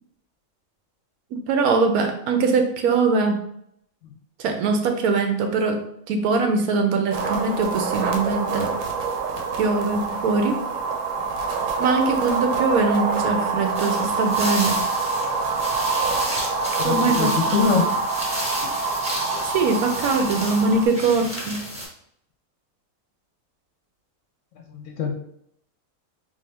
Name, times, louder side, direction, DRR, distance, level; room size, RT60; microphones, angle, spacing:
voice 1, 1.3-3.4 4.4-8.7 9.6-10.6 11.8-14.8 16.8-17.6 19.4-21.6, right 4 dB, 85° right, 5 dB, 1.1 m, -22 dB
sound 1, 7.1-20.9, right 4 dB, 70° right, 0.9 m, -26 dB
sound 2, 13.7-21.9, equal, 5° right, 0.9 m, -32 dB
voice 2, 16.8-17.9 24.5-25.1, left 5 dB, 65° left, 3 dB, 0.9 m, -24 dB
3.5 x 2.5 x 3.3 m, 0.72 s
omnidirectional pair, 1.5 m